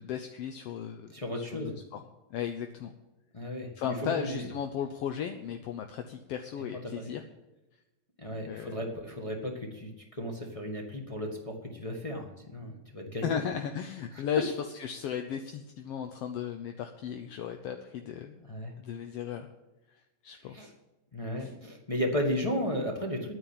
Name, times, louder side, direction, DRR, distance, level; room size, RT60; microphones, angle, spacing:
voice 1, 0.0-2.0 2.3-2.9 3.8-7.2 8.4-8.8 13.2-18.4 18.8-19.5 19.9-20.7 21.4-21.5, left 8 dB, 70° left, 6 dB, 1.5 m, -36 dB
voice 2, 1.1-1.8 3.3-4.5 6.8-7.1 8.2-13.4 14.1-14.2 18.4-18.7 20.4-20.7 21.1-23.3, equal, 30° left, 0 dB, 0.6 m, -34 dB
10.5 x 9.4 x 8.8 m, 1.0 s
omnidirectional pair, 3.6 m